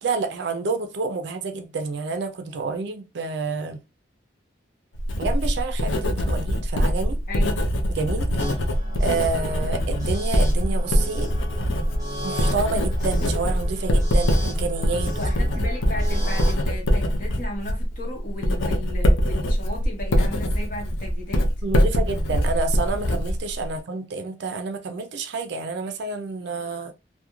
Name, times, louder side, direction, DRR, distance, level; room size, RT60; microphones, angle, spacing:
voice 1, 0.0-3.8 5.2-7.2 7.9-8.5 9.0-11.3 12.2-15.6 21.6-26.9, right 4 dB, 60° right, 0.4 m, -29 dB
Writing, 4.9-23.8, equal, 75° left, 0.5 m, -23 dB
voice 2, 7.3-7.6 15.2-21.5, left 1 dB, 45° left, 1.0 m, -35 dB
sound 1, 8.4-16.7, equal, 20° right, 0.8 m, -37 dB
2.3 x 2.1 x 2.9 m
head